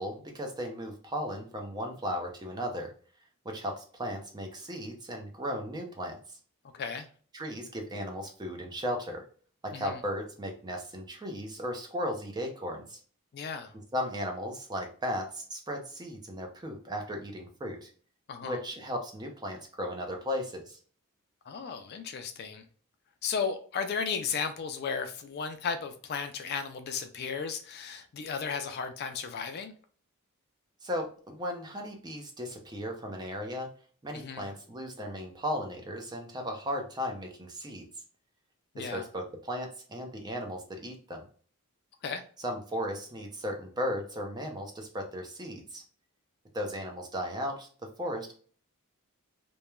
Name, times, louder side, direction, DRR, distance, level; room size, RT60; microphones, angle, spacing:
voice 1, 0.0-2.9 3.4-6.4 7.3-9.2 9.6-13.0 13.9-17.9 18.4-20.8 30.8-33.7 34.0-37.9 38.8-41.2 42.4-45.8 46.5-48.3, equal, 20° right, 0.4 m, -36 dB
voice 2, 6.7-7.1 9.7-10.0 13.3-13.7 18.3-18.6 21.5-22.6 23.2-29.7 34.1-34.4 38.7-39.0 42.0-42.2, left 6 dB, 45° left, 0.3 m, -35 dB
3.0 x 2.1 x 2.2 m
head